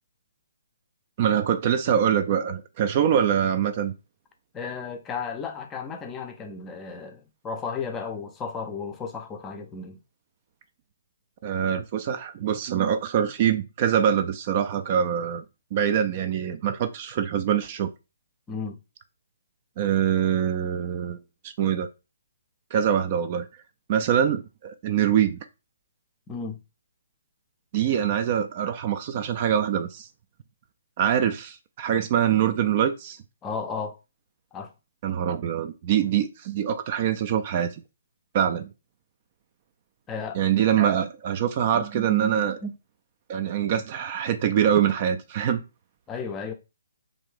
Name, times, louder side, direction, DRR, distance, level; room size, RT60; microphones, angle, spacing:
voice 1, 1.2-3.9 11.4-15.4 15.7-17.9 19.8-21.2 21.4-21.9 22.7-23.5 23.9-25.4 27.7-30.1 31.0-33.2 35.0-37.7 38.3-38.7 40.3-42.6 43.3-45.6, right 9 dB, 40° right, 0.4 m, -24 dB
voice 2, 4.5-10.0 18.5-18.8 26.3-26.6 33.4-34.0 34.5-34.7 40.1-40.4 41.7-42.7 46.1-46.5, left 4 dB, 15° left, 0.5 m, -34 dB
3.3 x 2.6 x 3.2 m
figure-of-eight pair, 135°, 0 cm